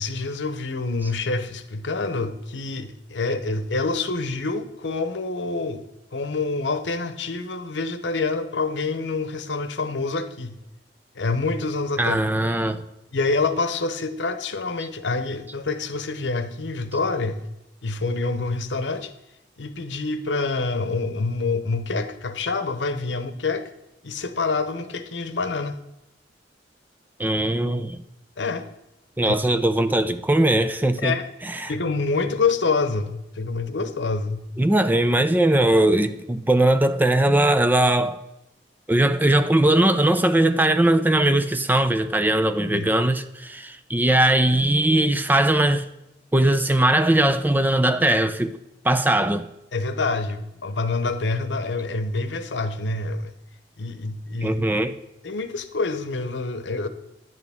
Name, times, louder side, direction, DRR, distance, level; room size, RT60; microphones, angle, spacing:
voice 1, 0.0-5.8 6.1-10.6 11.1-12.2 13.1-17.4 17.8-19.1 19.6-23.7 24.0-25.8 28.4-28.7 29.2-29.3 31.0-31.2 31.7-34.5 42.7-42.9 49.7-53.3 53.8-54.6 55.2-56.9, left 3 dB, 85° left, 0.8 m, -26 dB
voice 2, 12.0-12.8 27.2-28.0 29.2-31.1 31.4-31.7 34.6-38.2 38.9-45.9 46.3-48.5 48.8-49.5 54.4-54.9, right 1 dB, 10° right, 0.4 m, -20 dB
10.5 x 8.4 x 3.5 m
head